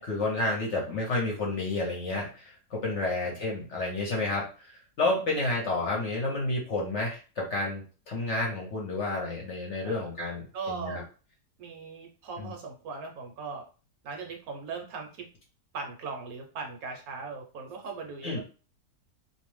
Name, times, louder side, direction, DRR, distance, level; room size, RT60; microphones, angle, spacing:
voice 1, 0.0-11.0 12.4-12.5 18.2-18.4, left 2 dB, 55° left, -2 dB, 0.9 m, -30 dB
voice 2, 10.5-11.0 11.6-13.7 14.0-15.3 15.7-18.4, right 4 dB, 70° right, 2 dB, 1.0 m, -39 dB
2.6 x 2.1 x 3.1 m, 0.36 s
omnidirectional pair, 1.7 m